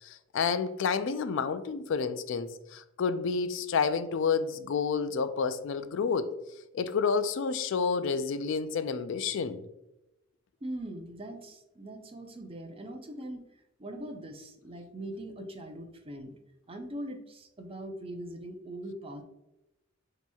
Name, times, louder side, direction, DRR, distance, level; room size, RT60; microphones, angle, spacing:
voice 1, 0.0-6.3 6.7-9.6, left 5 dB, 65° left, 11 dB, 0.4 m, -29 dB
voice 2, 10.6-13.4 13.8-16.3 16.7-19.2, right 1 dB, 30° right, 5 dB, 0.6 m, -41 dB
6.9 x 2.9 x 2.3 m, 0.91 s
head